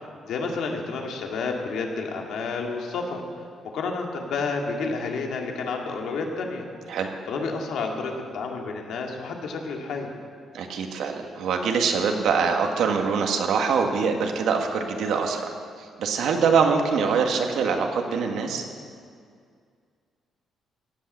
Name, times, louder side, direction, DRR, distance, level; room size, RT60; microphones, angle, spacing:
voice 1, 0.2-3.2 3.7-6.6 7.3-10.1, left 4 dB, 70° left, 1 dB, 2.1 m, -30 dB
voice 2, 10.5-15.5 15.8-18.6, right 5 dB, 70° right, 3 dB, 1.7 m, -24 dB
17.0 x 8.5 x 7.8 m, 2.2 s
cardioid pair, 170°, 0 cm